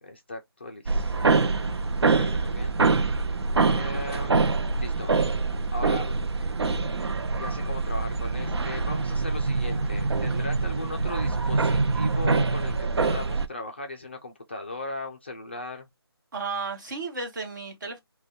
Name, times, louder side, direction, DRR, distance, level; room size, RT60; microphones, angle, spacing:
voice 1, 0.0-2.7 3.6-4.4 4.7-5.4 5.7-6.1 7.3-15.9, left 2 dB, 25° left, 0.4 m, -38 dB
sound 1, 0.9-13.5, right 3 dB, 85° right, 0.5 m, -25 dB
voice 2, 16.3-18.0, right 4 dB, 50° right, 1.2 m, -34 dB
2.5 x 2.2 x 3.4 m
figure-of-eight pair, 170°, 13 cm